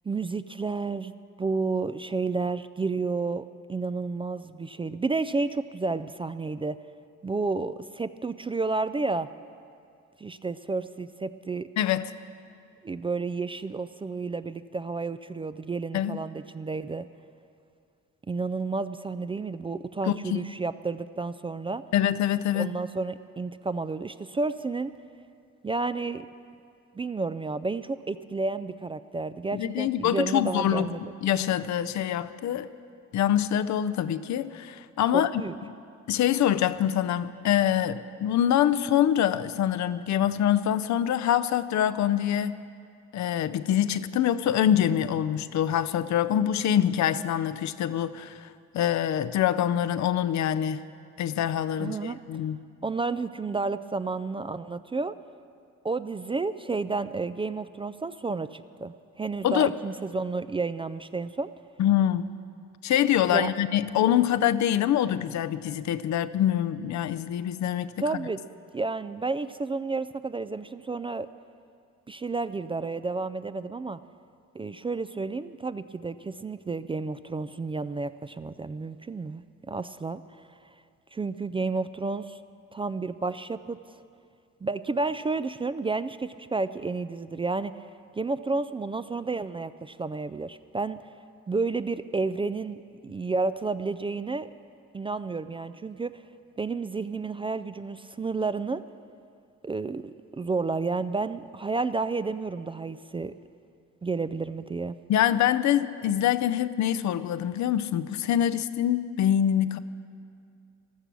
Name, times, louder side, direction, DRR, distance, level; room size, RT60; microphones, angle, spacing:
voice 1, 0.1-6.8 7.2-9.3 10.2-11.7 12.8-17.1 18.3-21.8 22.5-24.9 25.6-26.3 27.0-31.0 35.1-35.6 51.8-52.2 52.8-55.1 55.8-61.5 63.3-63.5 68.0-68.4 68.7-71.3 72.1-74.0 74.5-80.2 81.1-82.4 82.7-83.8 84.6-87.8 88.1-91.0 91.5-94.5 94.9-96.2 96.6-98.8 99.6-103.3 104.0-105.0, right 3 dB, 20° right, 13 dB, 0.3 m, -31 dB
voice 2, 11.8-12.1 15.9-16.2 20.1-20.4 21.9-22.7 29.5-30.9 31.2-32.7 33.1-35.3 36.1-42.6 43.1-50.8 51.2-52.6 59.4-59.7 61.8-62.3 62.8-67.9 105.1-109.8, left 10 dB, 65° left, 13 dB, 0.6 m, -25 dB
14.5 x 12.5 x 6.1 m, 2.4 s
cardioid pair, 90°, 30 cm